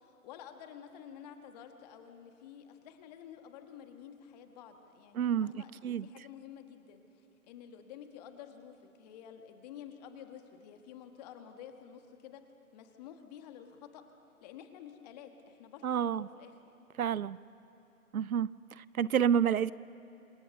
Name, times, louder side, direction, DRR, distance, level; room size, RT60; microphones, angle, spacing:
voice 1, 0.0-7.0 7.5-12.4 12.7-14.0 14.4-16.5, left 9 dB, 30° left, 6 dB, 1.7 m, -50 dB
voice 2, 5.1-5.5 5.8-6.1 15.8-16.3 17.0-17.4 18.1-19.7, right 8 dB, 75° right, 20 dB, 0.6 m, -29 dB
27.5 x 24.5 x 6.7 m, 3.0 s
figure-of-eight pair, 140°, 44 cm